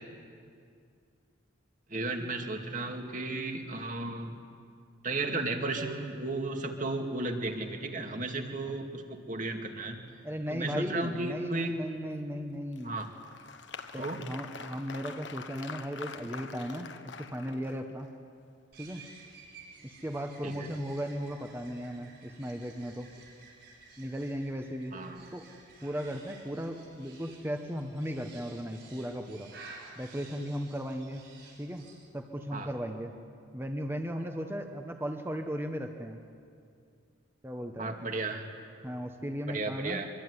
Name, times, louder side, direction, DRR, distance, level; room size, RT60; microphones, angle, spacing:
voice 1, 1.9-4.4 5.0-10.0 10.5-11.7 12.8-13.1 14.0-14.2 20.4-20.7 24.9-25.3 32.5-32.7 37.8-38.5 39.5-40.1, right 2 dB, 40° right, 4 dB, 2.4 m, -34 dB
voice 2, 10.2-13.0 13.9-18.1 18.8-19.0 20.0-23.1 24.0-24.9 25.3-25.5 25.8-29.5 30.0-31.2 31.6-31.9 32.1-33.1 33.5-36.2 37.4-37.9 38.8-40.0, equal, 10° right, 5 dB, 1.3 m, -36 dB
Applause, 12.7-18.1, left 5 dB, 65° left, 1.4 m, -45 dB
sound 1, 18.7-32.0, right 3 dB, 60° right, 7.7 m, -53 dB
24.5 x 24.0 x 9.8 m, 2.3 s
head